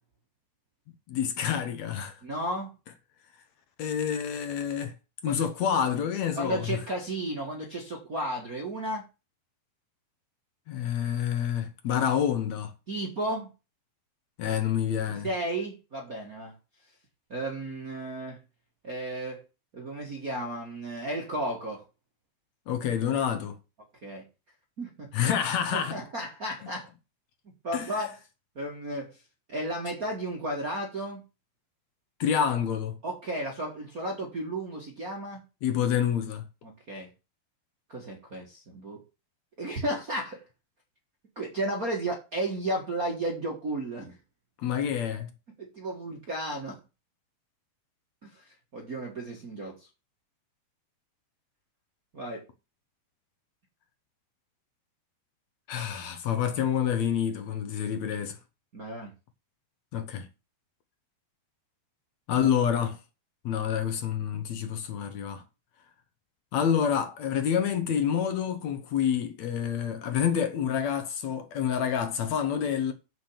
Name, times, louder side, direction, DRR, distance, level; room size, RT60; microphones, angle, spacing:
voice 1, 1.1-2.2 3.8-4.9 5.2-6.8 10.7-12.7 14.4-15.3 22.7-23.6 25.1-26.0 26.6-26.7 27.7-27.9 32.2-33.0 35.6-36.4 44.6-45.3 55.7-58.4 59.9-60.3 62.3-63.0 63.5-65.4 66.5-72.9, left 8 dB, 70° left, 1.7 m, -28 dB
voice 2, 2.2-2.7 5.2-5.5 6.3-9.0 12.9-13.5 15.1-16.6 17.3-18.4 18.8-19.4 19.7-21.8 24.0-24.2 24.8-25.1 25.7-26.9 27.6-28.2 28.5-29.2 29.5-31.2 33.0-35.4 36.6-37.1 37.9-39.0 39.6-40.4 41.3-44.2 45.6-46.8 48.2-49.9 52.1-52.4 58.7-59.1, right 1 dB, 60° right, 0.9 m, -33 dB
7.5 x 6.3 x 7.2 m
omnidirectional pair, 4.5 m